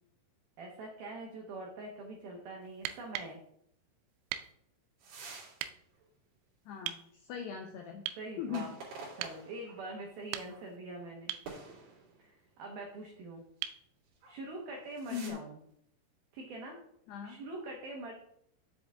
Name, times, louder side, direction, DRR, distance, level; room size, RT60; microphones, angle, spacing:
voice 1, 0.6-3.4 8.2-8.7 9.1-11.3 12.2-13.4 14.3-15.6 16.3-16.8 17.2-18.1, right 2 dB, 70° right, 0 dB, 2.3 m, -44 dB
sound 1, 2.7-3.4 4.3-4.5 5.6-5.7 6.9-7.1 8.1-8.3 9.2-9.4 10.1-10.8 11.3-11.5 13.6-13.9 15.7-15.8, right 12 dB, 90° right, 3.4 m, -39 dB
sound 2, 5.0-5.6 6.0-6.1 8.4-9.8 10.5-10.6 11.4-12.3 14.1-14.4 14.7-15.3, right 3 dB, 50° right, 3.5 m, -48 dB
voice 2, 6.7-8.0 8.4-8.7 15.1-15.4 17.1-17.4, left 8 dB, 85° left, 3 dB, 2.3 m, -39 dB
9.7 x 7.9 x 3.6 m, 0.70 s
omnidirectional pair, 6.0 m